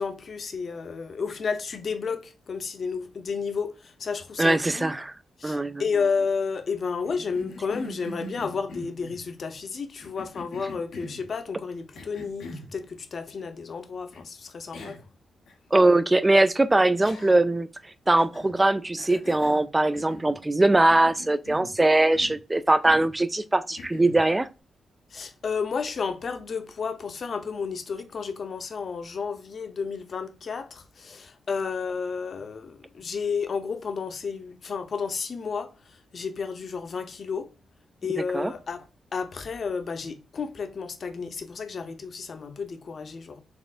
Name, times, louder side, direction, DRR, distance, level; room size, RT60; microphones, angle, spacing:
voice 1, 0.0-4.9 5.4-15.0 25.1-35.7 36.1-37.5 38.0-38.9 39.1-43.4, left 5 dB, 55° left, 0.6 m, -32 dB
voice 2, 4.4-5.1 5.4-5.8 15.7-17.7 18.1-24.5 38.3-38.5, right 2 dB, 20° right, 0.4 m, -21 dB
Cough, 7.0-9.2 10.0-11.3 11.9-12.7 14.1-14.2 14.7-15.1 15.5-15.6 17.0-17.6 18.2-18.6 19.0-20.4 20.7-21.8 22.1-22.4 22.8-23.2 23.8-24.3, left 2 dB, 90° left, 0.9 m, -42 dB
4.2 x 3.5 x 2.4 m
cardioid pair, 95°, 0 cm